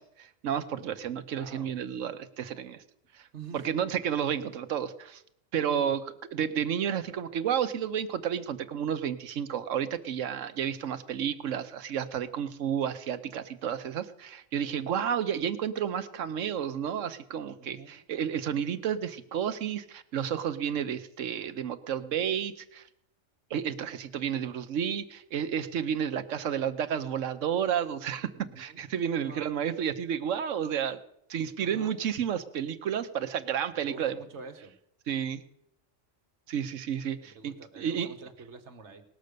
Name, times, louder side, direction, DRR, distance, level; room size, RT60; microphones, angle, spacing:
voice 1, 0.0-2.8 3.1-3.3 3.5-5.2 5.5-6.0 6.3-22.9 23.5-28.3 28.6-31.0 31.3-34.2 35.1-35.4 36.5-38.1, right 8 dB, 80° right, 10 dB, 1.2 m, -31 dB
voice 2, 1.3-1.7 3.3-3.6 5.7-5.9 17.6-17.9 22.0-22.2 28.3-28.8 29.2-29.4 31.6-31.9 33.7-34.7 37.2-39.0, right 5 dB, 65° right, 6 dB, 1.5 m, -46 dB
19.0 x 6.5 x 6.7 m, 0.76 s
omnidirectional pair, 1.3 m